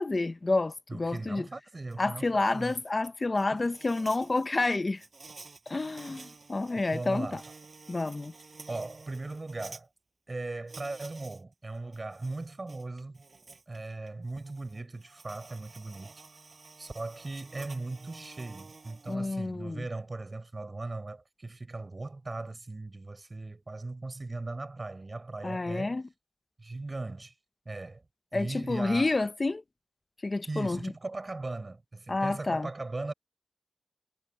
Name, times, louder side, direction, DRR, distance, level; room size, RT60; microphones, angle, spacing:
voice 1, 0.0-1.5 2.0-5.0 5.7-7.4 7.9-8.3 19.1-19.9 25.4-26.0 28.3-29.6 30.2-30.9 32.1-32.7, left 3 dB, 50° left, 0.7 m, -29 dB
voice 2, 0.9-2.8 3.5-3.6 6.9-7.4 8.7-9.9 10.3-13.2 13.7-16.2 16.8-26.0 26.6-27.3 27.6-28.0 28.3-29.1 30.5-33.1, right 2 dB, 50° right, 5.0 m, -38 dB
Insect, 1.9-2.0 2.4-9.8 10.7-11.4 11.8-19.2, right 4 dB, 75° right, 6.0 m, -51 dB
wide cardioid pair, 55°, 0 cm